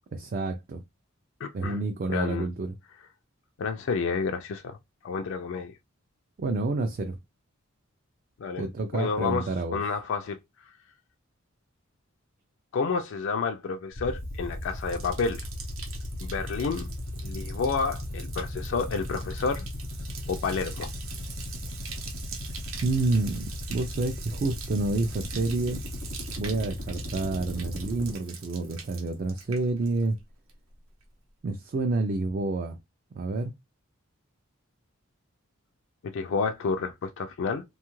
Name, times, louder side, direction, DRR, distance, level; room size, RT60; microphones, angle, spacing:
voice 1, 0.1-0.8 1.5-2.8 6.4-7.2 8.6-9.8 22.8-25.8 26.4-30.2 31.4-32.8 33.1-33.5, right 3 dB, 45° right, 0.3 m, -29 dB
voice 2, 1.4-1.8 2.1-2.5 3.6-4.8 5.0-5.7 8.4-8.7 8.9-10.4 12.7-15.5 16.2-16.9 17.2-19.7 20.3-20.9 36.1-37.6, left 5 dB, 60° left, 0.3 m, -30 dB
sound 1, 13.9-28.1, left 1 dB, 80° left, 0.7 m, -37 dB
Bathtub (filling or washing), 14.1-30.2 30.5-31.0, right 6 dB, 70° right, 0.7 m, -44 dB
2.7 x 2.3 x 3.0 m
head